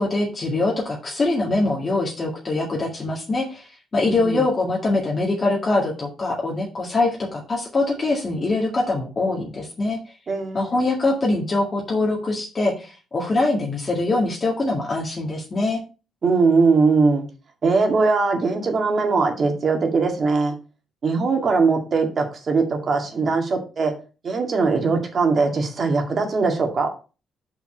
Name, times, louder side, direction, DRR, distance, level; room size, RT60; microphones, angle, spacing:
voice 1, 0.0-3.7 3.9-10.0 10.5-15.8, left 2 dB, 35° left, -2 dB, 2.0 m, -23 dB
voice 2, 10.3-10.7 16.2-17.2 17.6-20.5 21.0-23.9 24.2-26.9, right 4 dB, 45° right, 3 dB, 2.1 m, -20 dB
5.6 x 4.8 x 6.1 m, 0.33 s
cardioid pair, 90°, 0 cm